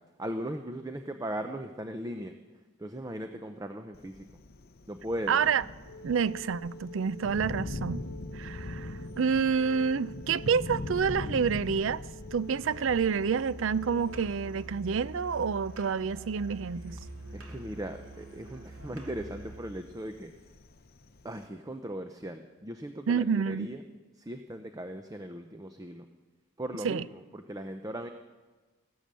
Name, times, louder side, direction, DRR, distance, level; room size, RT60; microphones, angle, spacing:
voice 1, 0.2-2.3 2.8-4.3 4.9-5.4 17.3-20.3 21.2-23.8 24.2-26.1 26.6-27.0 27.3-28.1, right 1 dB, 15° right, 0.6 m, -38 dB
Thunder, 3.9-21.5, left 2 dB, 45° left, 0.7 m, -43 dB
voice 2, 5.3-5.6 6.0-8.0 8.3-12.0 12.3-17.0 23.1-23.7 26.8-27.1, right 6 dB, 65° right, 0.4 m, -28 dB
Wind instrument woodwind instrument, 5.9-14.3, left 2 dB, 70° left, 1.0 m, -48 dB
Musical instrument, 12.6-19.7, right 2 dB, 85° right, 2.6 m, -46 dB
15.5 x 12.0 x 7.6 m
head